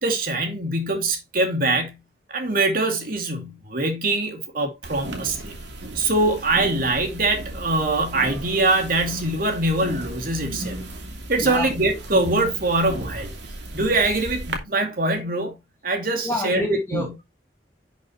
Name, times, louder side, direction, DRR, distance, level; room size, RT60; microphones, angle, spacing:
voice 1, 0.0-2.0 2.3-5.5 5.9-10.8 11.3-13.3 13.7-15.6 15.8-17.1, right 2 dB, 55° right, 2.5 m, -23 dB
sound 1, 4.8-14.6, right 1 dB, 85° right, 2.7 m, -35 dB
voice 2, 11.4-11.7 16.2-17.2, equal, 15° left, 2.1 m, -28 dB
11.5 x 6.4 x 3.1 m
head